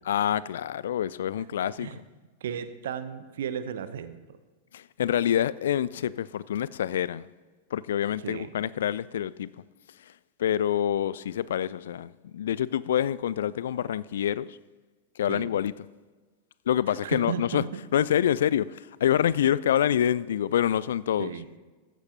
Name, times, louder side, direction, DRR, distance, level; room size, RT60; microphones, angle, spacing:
voice 1, 0.1-2.0 4.7-7.3 7.7-9.5 10.4-14.6 15.2-15.7 16.7-17.6 17.9-21.3, left 10 dB, 60° left, 0.3 m, -26 dB
voice 2, 2.4-4.2 8.2-8.5 15.3-15.5 17.0-17.7 21.2-21.5, right 8 dB, 60° right, 0.8 m, -34 dB
15.0 x 14.5 x 2.9 m
figure-of-eight pair, 90°, 0 cm